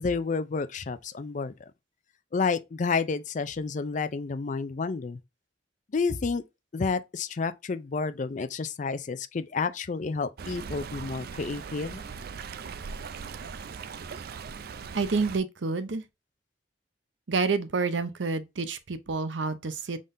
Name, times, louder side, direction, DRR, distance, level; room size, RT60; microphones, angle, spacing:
voice 1, 0.0-1.7 2.3-5.2 5.9-6.4 6.7-12.0, left 4 dB, 45° left, 0.4 m, -30 dB
Stream, 10.4-15.4, right 5 dB, 55° right, 0.4 m, -39 dB
voice 2, 14.9-16.0 17.3-20.0, right 4 dB, 85° right, 0.7 m, -28 dB
5.5 x 3.8 x 2.6 m
head